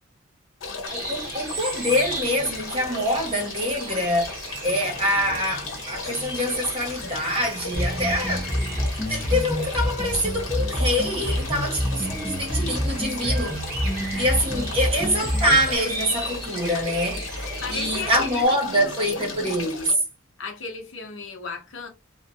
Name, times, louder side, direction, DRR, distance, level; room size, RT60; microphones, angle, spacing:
sound 1, 0.6-19.9, left 3 dB, 85° left, 1.0 m, -37 dB
voice 1, 0.9-4.4 4.6-8.5 9.1-13.6 14.1-17.3 17.7-20.0, equal, 25° right, 1.0 m, -25 dB
sound 2, 0.9-18.5, right 2 dB, 45° right, 1.3 m, -36 dB
voice 2, 4.7-5.8 14.7-15.1 17.2-17.3 17.6-19.2 20.4-21.9, left 4 dB, 70° left, 0.8 m, -37 dB
sound 3, 7.7-15.8, equal, 10° left, 0.6 m, -27 dB
3.4 x 2.2 x 2.7 m
head